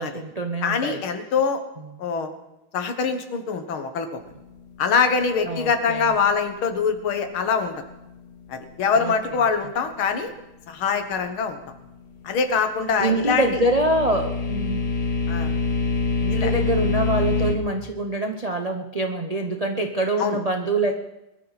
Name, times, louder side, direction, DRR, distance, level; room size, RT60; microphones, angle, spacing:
voice 1, 0.0-1.0 1.8-1.9 5.5-6.1 9.0-9.1 13.0-14.8 16.2-20.9, right 2 dB, 90° right, 4 dB, 0.3 m, -25 dB
voice 2, 0.6-1.6 2.0-2.3 2.7-4.1 4.8-7.7 8.5-10.3 10.7-11.6 12.2-13.6 15.3-15.5 16.3-16.5 20.2-20.4, left 5 dB, 75° left, 7 dB, 2.2 m, -23 dB
sound 1, 13.0-17.5, left 3 dB, 45° left, 1.7 m, -25 dB
22.0 x 13.0 x 4.1 m, 0.94 s
omnidirectional pair, 2.3 m